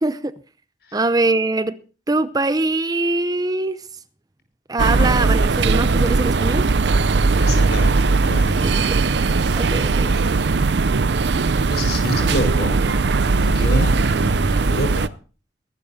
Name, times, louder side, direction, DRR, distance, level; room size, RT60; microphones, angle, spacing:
voice 1, 0.0-0.3 0.9-1.8 2.1-3.8 4.7-6.7 8.6-9.0 9.5-10.2, right 2 dB, 20° right, 0.6 m, -22 dB
sound 1, 4.8-15.1, right 3 dB, 70° right, 0.6 m, -19 dB
voice 2, 7.4-8.9 11.6-12.8 13.3-15.1, left 1 dB, 60° left, 5.3 m, -27 dB
23.0 x 12.0 x 2.8 m
head